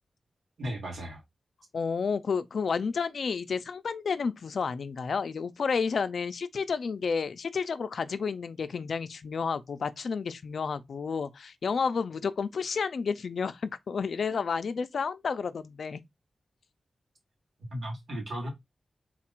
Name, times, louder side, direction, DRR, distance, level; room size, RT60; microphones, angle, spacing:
voice 1, 0.6-1.2 17.7-18.5, equal, 70° right, 2.5 m, -35 dB
voice 2, 1.7-16.0, left 5 dB, 70° left, 0.4 m, -31 dB
3.9 x 2.4 x 4.4 m
wide cardioid pair, 95°, 0 cm